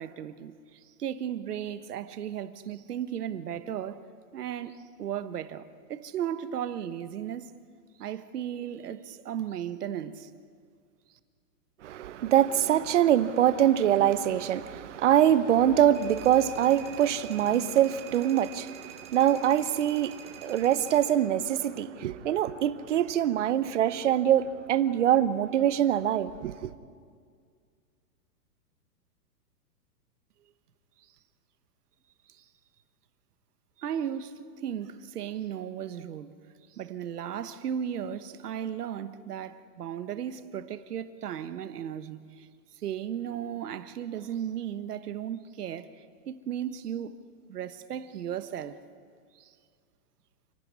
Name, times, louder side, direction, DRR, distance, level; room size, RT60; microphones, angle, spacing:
voice 1, 0.0-4.1 4.3-7.5 8.0-10.3 32.3-32.4 33.8-36.3 36.7-42.5 42.8-47.1 47.5-48.8 49.3-49.5, right 9 dB, 70° right, 1.5 m, -35 dB
voice 2, 11.8-26.5, right 10 dB, 45° right, 1.0 m, -24 dB
sound 1, 15.9-21.1, right 9 dB, 15° right, 1.5 m, -48 dB
28.0 x 12.0 x 9.7 m
hypercardioid pair, 165°, 48 cm